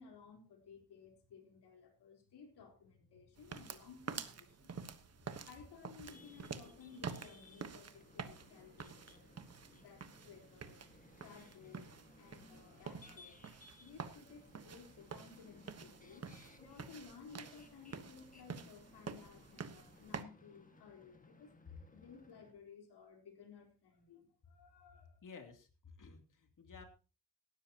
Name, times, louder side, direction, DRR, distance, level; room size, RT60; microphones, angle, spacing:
voice 1, 0.0-4.7 5.5-9.3 9.7-11.9 12.1-13.5 13.8-16.3 16.6-21.5 21.9-25.2, left 6 dB, 80° left, 3 dB, 4.2 m, -57 dB
sound 1, 3.4-20.2, right 6 dB, 40° right, 1.3 m, -49 dB
sound 2, 6.1-22.5, left 2 dB, 20° left, 1.9 m, -62 dB
voice 2, 25.2-26.8, left 5 dB, 50° left, 4 dB, 3.1 m, -54 dB
17.5 x 13.0 x 3.0 m, 0.34 s
cardioid pair, 110°, 39 cm